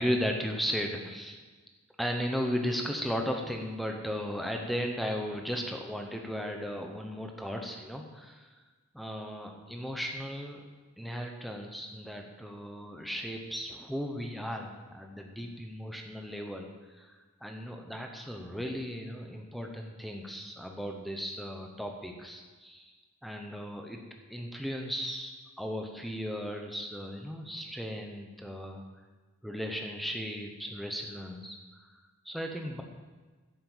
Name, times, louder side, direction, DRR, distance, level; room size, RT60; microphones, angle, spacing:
voice 1, 0.0-1.4 2.0-8.5 8.9-10.6 11.0-16.7 16.9-22.9 23.2-24.0 24.3-28.8 29.4-31.8 32.2-32.8, equal, ahead, 2 dB, 1.0 m, -36 dB
9.6 x 7.7 x 7.3 m, 1.3 s
head